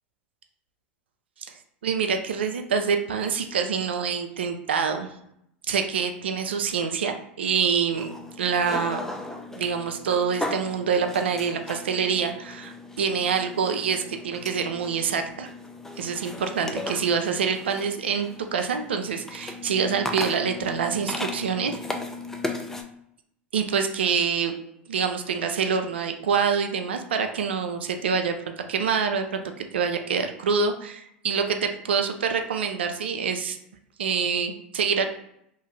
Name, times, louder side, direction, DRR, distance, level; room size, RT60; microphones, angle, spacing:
voice 1, 1.4-5.1 5.7-8.1 8.4-9.0 9.5-15.5 16.0-21.7 23.5-24.6 24.9-28.4 28.7-33.6 34.0-35.1, right 6 dB, 80° right, 6 dB, 0.3 m, -26 dB
sound 1, 7.9-22.8, left 2 dB, 5° left, 0.4 m, -37 dB
2.5 x 2.3 x 3.2 m, 0.75 s
hypercardioid pair, 85°, 6 cm